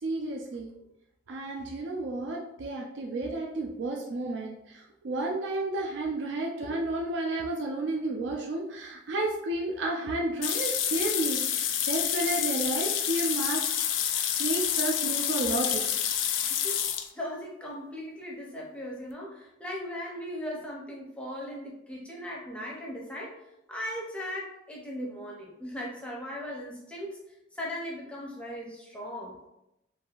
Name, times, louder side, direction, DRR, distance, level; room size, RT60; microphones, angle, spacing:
voice 1, 0.0-0.7 1.3-13.7 14.1-15.8, right 2 dB, 65° right, -1 dB, 0.4 m, -32 dB
sound 1, 10.4-17.1, left 9 dB, 75° left, 0.3 m, -28 dB
voice 2, 16.4-23.4 23.7-27.2 27.5-29.4, equal, 5° left, -3 dB, 0.5 m, -38 dB
3.2 x 2.5 x 2.3 m, 0.87 s
head